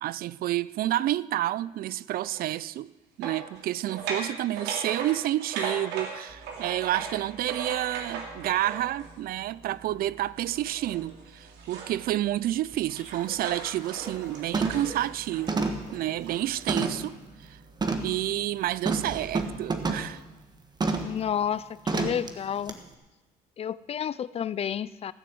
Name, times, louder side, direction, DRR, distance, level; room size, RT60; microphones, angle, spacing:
voice 1, 0.0-2.9 3.2-17.6 18.0-20.2, right 14 dB, 60° right, 0.4 m, -29 dB
sound 1, 2.2-2.4 3.2-9.2 10.5-12.0 12.4-16.6, right 5 dB, 90° right, 2.4 m, -38 dB
sound 2, 6.3-19.2, right 2 dB, 40° right, 2.1 m, -54 dB
sound 3, 12.7-12.8 13.3-13.5 13.9-14.2 14.5-14.9 15.5-17.1 17.8-18.2 18.8-20.1 20.8-21.2 21.9-22.3 22.7-22.8, right 3 dB, 25° right, 1.3 m, -29 dB
voice 2, 21.0-22.7 23.6-25.1, left 9 dB, 35° left, 0.4 m, -31 dB
15.5 x 6.8 x 7.8 m
cardioid pair, 110°, 17 cm